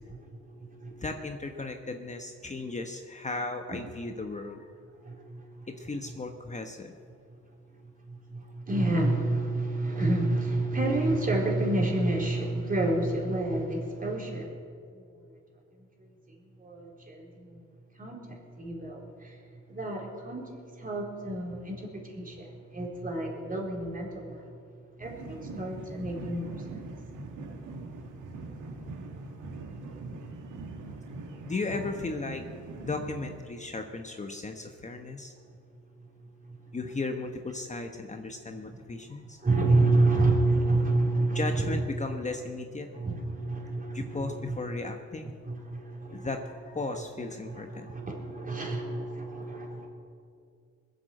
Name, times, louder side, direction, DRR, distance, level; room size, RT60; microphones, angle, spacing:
voice 1, 0.1-1.0 3.7-3.8 5.0-5.7 8.1-14.5 16.6-17.6 18.0-19.4 19.7-20.5 20.8-24.4 25.0-26.8 36.5-36.6 39.4-42.1 42.9-44.6 45.4-46.3 47.5-49.9, right 2 dB, 30° right, -1 dB, 4.2 m, -29 dB
voice 2, 1.0-4.7 5.7-6.9 31.4-32.4 32.8-35.3 36.7-39.4 41.3-42.9 43.9-45.4 46.1-47.9, left 3 dB, 25° left, 4 dB, 1.1 m, -36 dB
sound 1, 25.0-33.4, right 3 dB, 85° right, 2.0 m, -42 dB
21.5 x 8.1 x 7.8 m, 2.4 s
cardioid pair, 90°, 30 cm